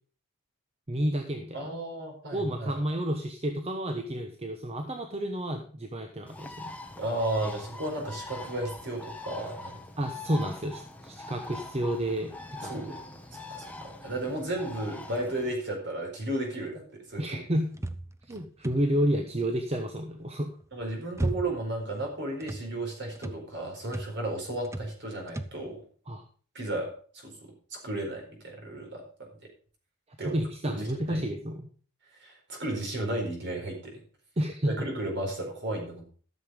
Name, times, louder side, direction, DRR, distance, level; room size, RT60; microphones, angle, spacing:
voice 1, 0.9-1.7 2.3-6.7 10.0-12.3 12.6-12.9 17.2-17.7 18.3-20.6 26.1-26.2 30.2-31.7 34.4-34.9, right 1 dB, 30° right, 5 dB, 1.0 m, -30 dB
voice 2, 1.5-2.7 7.0-9.8 12.7-13.0 13.5-16.8 17.1-17.4 20.7-25.8 26.5-29.0 30.2-30.4 30.6-31.2 32.2-34.0 34.7-36.0, right 1 dB, 50° right, 1 dB, 4.4 m, -34 dB
Bird, 6.3-15.5, left 2 dB, 5° left, 1.1 m, -43 dB
sound 1, 17.7-19.1 20.6-21.8 22.1-22.7 23.2-23.5 23.8-24.2 24.6-25.0 25.3-25.6, right 1 dB, 15° right, 0.6 m, -35 dB
13.5 x 6.8 x 5.2 m, 0.42 s
head